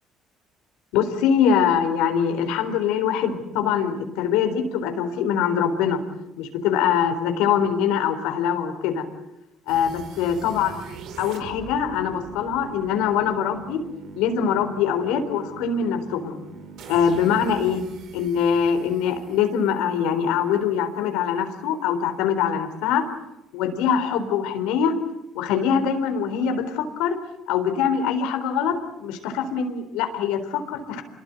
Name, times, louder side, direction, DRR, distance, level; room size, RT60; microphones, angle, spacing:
voice 1, 0.9-6.0 6.4-9.0 9.7-10.7 11.2-13.8 14.2-16.4 16.9-17.8 18.1-23.0 23.5-24.9 25.3-27.2 27.5-28.7 29.0-31.0, left 7 dB, 90° left, 7 dB, 4.1 m, -23 dB
sound 1, 9.7-20.6, right 5 dB, 70° right, 5.2 m, -42 dB
27.5 x 22.0 x 9.1 m, 0.92 s
cardioid pair, 95°, 0 cm